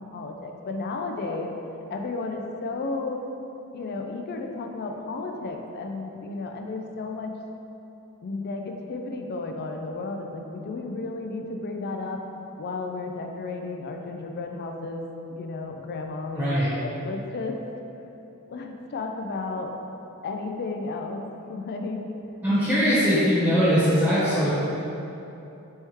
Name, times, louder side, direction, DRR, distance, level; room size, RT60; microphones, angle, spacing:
voice 1, 0.0-1.5 1.9-3.2 3.7-7.3 8.2-12.2 12.6-17.6 18.5-19.7 20.2-21.2 21.5-22.0, left 3 dB, 45° left, 3 dB, 0.3 m, -33 dB
voice 2, 16.3-16.7 22.4-24.5, equal, 10° right, -13 dB, 1.1 m, -21 dB
4.3 x 3.4 x 3.1 m, 2.9 s
head